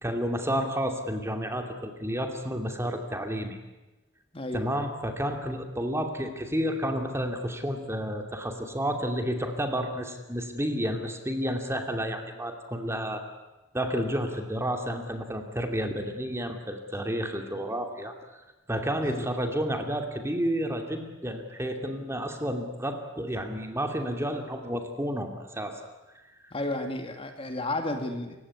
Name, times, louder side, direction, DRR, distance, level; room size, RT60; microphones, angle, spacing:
voice 1, 0.0-3.6 4.5-13.2 13.7-18.1 18.7-25.8, equal, 15° right, 4 dB, 2.6 m, -31 dB
voice 2, 4.3-4.7 19.0-19.2 26.5-28.4, left 2 dB, 30° left, 5 dB, 2.2 m, -32 dB
27.5 x 16.5 x 9.7 m, 1.1 s
head